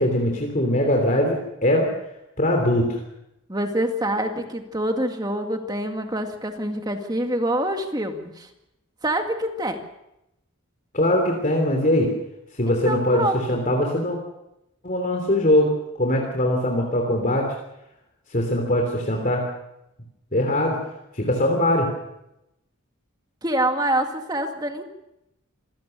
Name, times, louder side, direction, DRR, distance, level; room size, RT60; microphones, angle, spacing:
voice 1, 0.0-1.9 2.4-3.0 10.9-12.1 12.6-14.2 14.8-15.7 16.0-17.5 18.3-19.5 20.3-20.8 21.1-21.9, left 1 dB, 40° left, 2 dB, 3.3 m, -21 dB
voice 2, 3.5-8.5 9.0-9.8 12.8-13.6 23.4-24.9, right 1 dB, 20° right, 5 dB, 2.1 m, -26 dB
26.0 x 17.0 x 6.7 m, 0.87 s
head